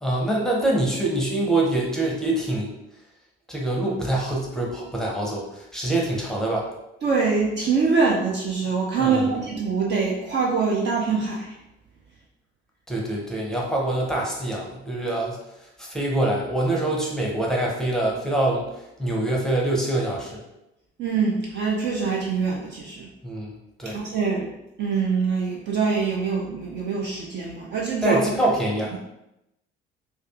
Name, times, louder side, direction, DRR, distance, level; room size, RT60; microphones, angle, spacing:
voice 1, 0.0-2.7 3.5-6.7 9.0-9.3 12.9-15.4 15.8-20.4 23.2-23.5 23.8-24.0 28.0-29.0, right 1 dB, ahead, -3 dB, 0.7 m, -25 dB
voice 2, 7.0-11.5 21.0-23.1 23.9-24.5 24.8-28.2, right 5 dB, 35° right, -2 dB, 0.4 m, -24 dB
2.4 x 2.3 x 2.4 m, 0.88 s
figure-of-eight pair, 45°, 31 cm